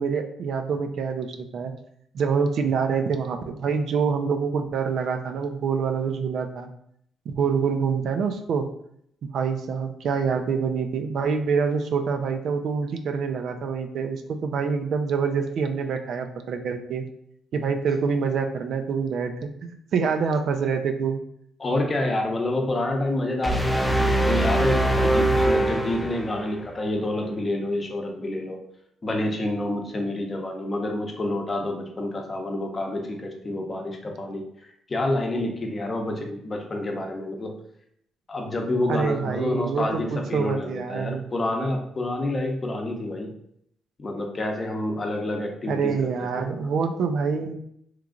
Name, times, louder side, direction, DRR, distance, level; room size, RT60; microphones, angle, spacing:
voice 1, 0.0-1.7 2.1-6.7 7.3-8.7 9.3-17.1 17.5-21.2 38.9-41.3 45.7-47.5, right 5 dB, 70° right, 6 dB, 0.4 m, -26 dB
voice 2, 21.6-28.6 29.0-34.4 34.9-37.5 38.3-43.3 44.0-46.5, left 1 dB, 35° left, 2 dB, 0.7 m, -28 dB
sound 1, 23.4-26.6, right 1 dB, 5° left, 0.4 m, -22 dB
3.0 x 2.4 x 3.7 m, 0.70 s
cardioid pair, 90°, 0 cm